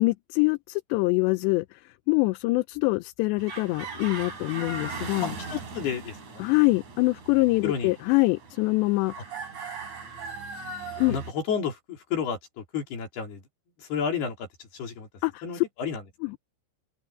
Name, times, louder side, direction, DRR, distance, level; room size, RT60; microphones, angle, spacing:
voice 1, 0.0-1.8 2.1-5.3 6.4-9.1 11.0-11.2 15.2-15.6 16.2-16.4, left 24 dB, 85° left, 2.6 m, -24 dB
sound 1, 3.4-11.3, right 4 dB, 40° right, 5.5 m, -39 dB
voice 2, 5.2-6.4 7.6-7.9 11.1-13.4 13.8-15.1 15.4-16.0, left 6 dB, 60° left, 6.0 m, -31 dB
omnidirectional pair, 5.4 m